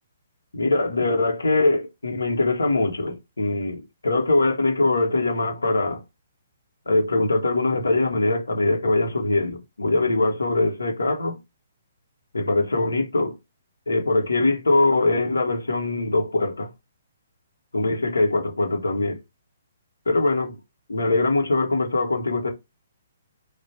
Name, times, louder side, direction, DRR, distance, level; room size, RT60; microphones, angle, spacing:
voice 1, 0.5-6.0 6.9-11.4 12.3-13.4 13.9-16.7 17.7-19.2 20.1-20.6 20.9-22.5, left 2 dB, 85° left, 1.1 m, -22 dB
3.4 x 2.5 x 4.2 m
figure-of-eight pair, 130°, 0 cm